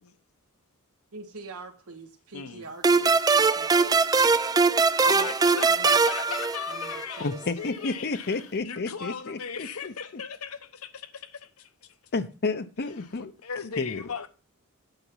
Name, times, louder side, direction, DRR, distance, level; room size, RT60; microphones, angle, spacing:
voice 1, 1.1-3.9 4.9-5.3 5.7-6.0 6.7-7.5, right 3 dB, 75° right, 1.3 m, -45 dB
voice 2, 2.3-2.6 5.0-11.7 13.4-14.3, left 6 dB, 70° left, 1.0 m, -37 dB
sound 1, 2.8-7.2, right 4 dB, 15° right, 0.4 m, -22 dB
voice 3, 7.2-10.2 12.1-13.3 13.8-14.0, left 3 dB, 50° left, 0.7 m, -31 dB
9.0 x 7.0 x 5.5 m
head